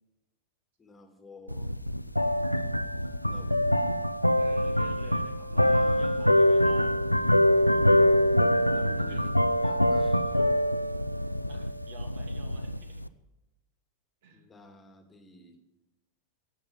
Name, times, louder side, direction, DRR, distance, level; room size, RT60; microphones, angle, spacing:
voice 1, 0.8-1.7 3.2-3.9 5.5-6.3 8.7-9.4 9.6-10.4 14.3-15.6, left 3 dB, 15° left, 5 dB, 2.0 m, -51 dB
sound 1, 1.5-13.1, equal, 90° left, 0.5 m, -24 dB
voice 2, 4.3-6.9 9.0-9.3 11.5-13.0 14.2-14.5, right 3 dB, 55° right, 5 dB, 2.6 m, -50 dB
17.0 x 7.3 x 8.8 m, 0.96 s
figure-of-eight pair, 90°, 0 cm